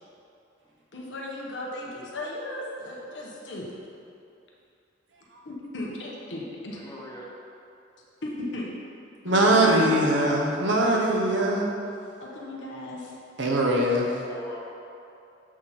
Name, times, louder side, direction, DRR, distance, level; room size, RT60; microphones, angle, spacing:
voice 1, 0.9-3.6 5.4-6.8 8.2-8.8 9.2-10.0 12.2-13.2, left 1 dB, 70° left, -3 dB, 1.1 m, -36 dB
voice 2, 6.7-7.3 13.7-14.7, equal, 20° left, -5 dB, 1.1 m, -44 dB
voice 3, 9.2-11.7 13.4-14.1, right 1 dB, 75° right, -1 dB, 0.9 m, -21 dB
7.6 x 4.1 x 4.2 m, 2.7 s
head